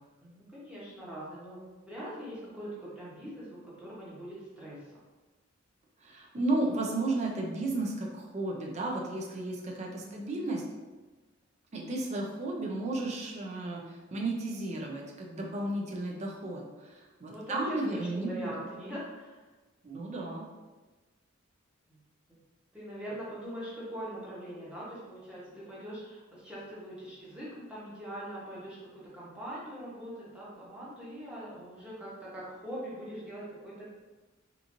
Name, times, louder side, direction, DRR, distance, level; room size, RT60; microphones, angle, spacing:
voice 1, 0.2-4.8 9.8-10.1 17.3-19.4 21.9-22.0 22.3-22.4 22.7-33.8, equal, 5° right, -8 dB, 0.9 m, -42 dB
voice 2, 6.0-10.6 11.7-18.5 19.8-20.5, right 2 dB, 35° right, -1 dB, 0.4 m, -33 dB
2.9 x 2.4 x 2.6 m, 1.2 s
head